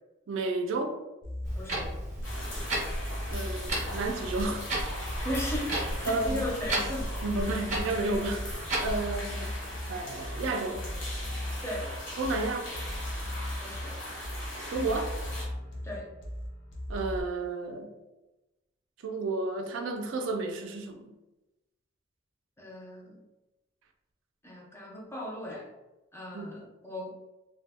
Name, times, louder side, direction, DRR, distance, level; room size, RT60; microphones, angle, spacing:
voice 1, 0.3-1.0 3.3-4.9 6.1-6.4 7.2-9.5 9.9-10.8 12.2-12.7 14.7-15.1 16.9-17.9 19.0-21.1 26.3-26.5, right 3 dB, 70° right, 4 dB, 0.4 m, -32 dB
sound 1, 1.2-17.2, left 1 dB, 60° left, 0.7 m, -38 dB
Clock, 1.4-9.0, right 1 dB, 40° right, 0.6 m, -35 dB
voice 2, 1.6-1.9 5.2-7.1 7.4-7.5 11.6-11.9 13.6-14.0 15.8-16.1 22.6-23.2 24.4-25.7 26.1-27.1, left 1 dB, 15° left, -2 dB, 0.4 m, -37 dB
sound 2, 2.2-15.5, left 1 dB, 80° left, 1.0 m, -40 dB
2.1 x 2.0 x 3.3 m, 1.0 s
head